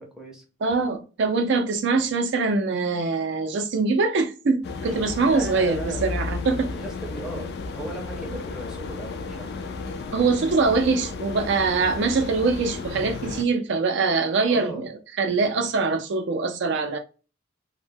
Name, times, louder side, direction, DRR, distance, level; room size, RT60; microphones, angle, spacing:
voice 1, 0.0-0.4 5.2-6.1 6.7-9.6 12.9-13.1 14.5-14.8, right 1 dB, 5° right, 0.5 m, -37 dB
voice 2, 0.6-6.7 10.1-14.9 15.2-17.0, right 4 dB, 55° right, 0.4 m, -23 dB
sound 1, 4.6-13.4, left 3 dB, 50° left, 0.3 m, -33 dB
2.2 x 2.0 x 3.3 m
head